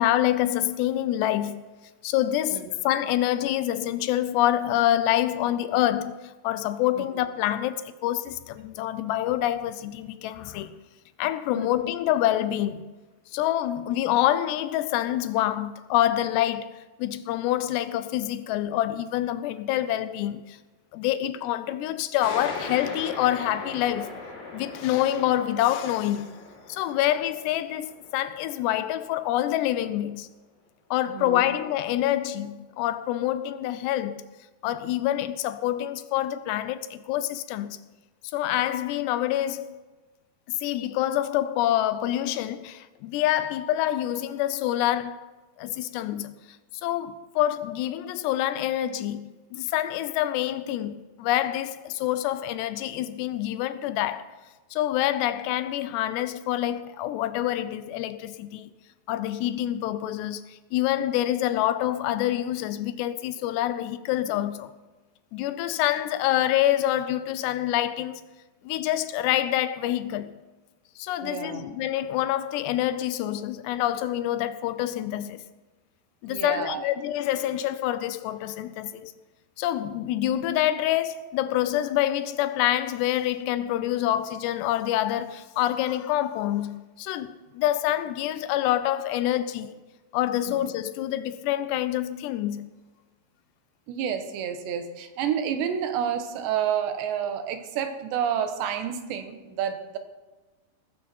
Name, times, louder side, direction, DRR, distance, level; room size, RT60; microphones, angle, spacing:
voice 1, 0.0-1.6 2.0-10.8 11.2-12.9 13.3-20.6 20.9-24.1 24.5-26.3 26.7-30.3 30.9-34.3 34.6-37.8 38.3-39.8 40.5-45.3 45.6-46.4 46.8-54.4 54.7-58.7 59.1-64.7 65.3-68.2 68.6-70.4 71.0-75.4 76.2-79.1 79.6-89.8 90.1-92.7, left 13 dB, 85° left, 2.9 m, -26 dB
sound 1, 22.2-29.4, left 2 dB, 40° left, 6.7 m, -40 dB
voice 2, 31.1-31.4 71.2-71.7 76.3-76.8 90.4-90.6 93.9-100.0, right 8 dB, 90° right, 3.5 m, -29 dB
18.5 x 15.0 x 4.5 m
omnidirectional pair, 4.8 m